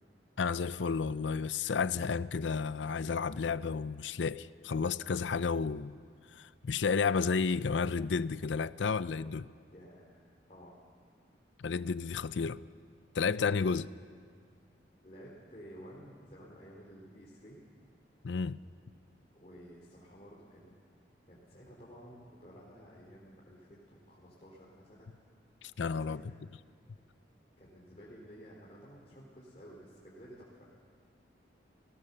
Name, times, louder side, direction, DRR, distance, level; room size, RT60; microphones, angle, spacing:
voice 1, 0.4-6.0 6.3-9.5 11.6-12.6 13.1-13.9 18.2-18.6 25.6-26.2, left 5 dB, 85° left, 0.5 m, -32 dB
voice 2, 9.7-10.8 13.4-13.7 15.0-17.6 19.3-20.7 21.3-25.1 25.8-26.4 27.6-30.7, equal, 35° left, 3.3 m, -53 dB
30.0 x 17.0 x 6.7 m
head